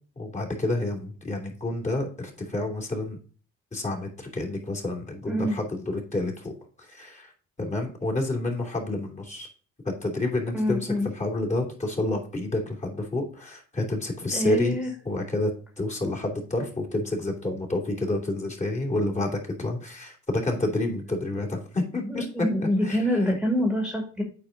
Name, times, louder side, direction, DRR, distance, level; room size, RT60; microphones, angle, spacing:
voice 1, 0.2-3.2 3.7-6.5 6.8-7.3 7.6-9.5 9.8-14.8 15.1-22.5 22.8-23.0 23.3-23.4, left 2 dB, 25° left, 1 dB, 2.8 m, -29 dB
voice 2, 5.3-5.6 10.5-11.1 14.3-14.9 22.0-24.2, equal, 5° right, 1 dB, 2.1 m, -26 dB
8.6 x 4.5 x 3.8 m, 0.40 s
cardioid pair, 90°, 30 cm